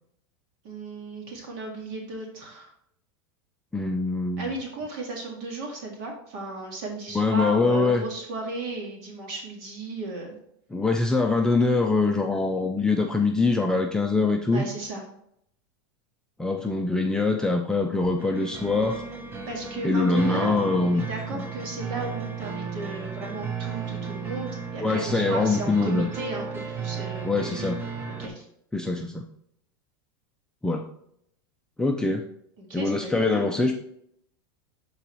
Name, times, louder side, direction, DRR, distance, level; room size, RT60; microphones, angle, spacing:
voice 1, 0.6-2.7 4.4-10.3 14.5-15.0 19.5-27.7 28.2-28.4 32.6-33.5, right 2 dB, 60° right, 0 dB, 2.0 m, -35 dB
voice 2, 3.7-4.5 7.1-8.0 10.7-14.6 16.4-19.0 19.8-21.0 21.3-21.5 24.8-26.1 27.2-27.8 28.7-29.2 30.6-30.8 31.8-32.2 32.7-33.7, left 3 dB, 5° left, 1 dB, 0.5 m, -23 dB
sound 1, 18.2-28.3, right 6 dB, 15° right, 0.9 m, -34 dB
10.5 x 4.0 x 3.1 m, 0.71 s
supercardioid pair, 135°, 13 cm